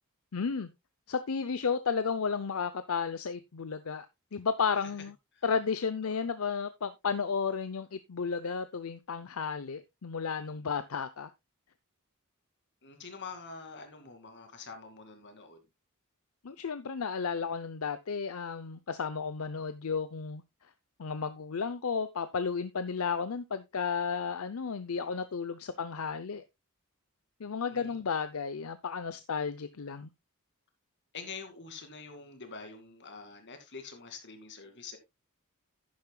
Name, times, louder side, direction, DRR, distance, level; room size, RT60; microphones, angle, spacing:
voice 1, 0.3-0.7 1.1-4.1 4.3-5.1 5.4-11.3 16.4-20.4 21.0-26.4 27.4-30.1, left 5 dB, 75° left, 0.6 m, -33 dB
voice 2, 12.8-15.6 27.5-28.0 31.1-35.0, left 5 dB, 55° left, 2.3 m, -46 dB
10.5 x 10.5 x 2.3 m
head